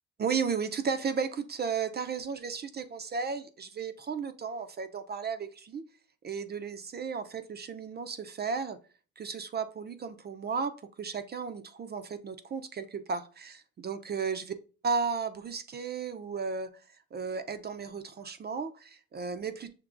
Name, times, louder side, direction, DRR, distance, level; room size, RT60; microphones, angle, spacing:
voice 1, 0.2-5.8 6.2-8.8 9.2-14.6 14.8-16.7 17.1-19.7, right 5 dB, 35° right, 10 dB, 0.4 m, -34 dB
5.9 x 2.9 x 2.4 m, 0.38 s
cardioid pair, 90°, 30 cm